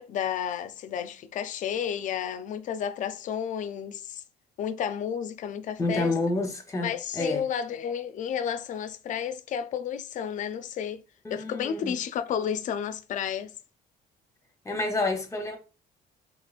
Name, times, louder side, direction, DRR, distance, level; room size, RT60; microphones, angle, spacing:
voice 1, 0.0-4.2 4.6-6.1 6.8-11.0 11.3-13.5, left 8 dB, 50° left, 0.4 m, -32 dB
voice 2, 5.8-7.4 11.2-11.9 14.6-15.6, left 2 dB, 20° left, 0.8 m, -29 dB
2.9 x 2.4 x 2.4 m
cardioid pair, 110°, 17 cm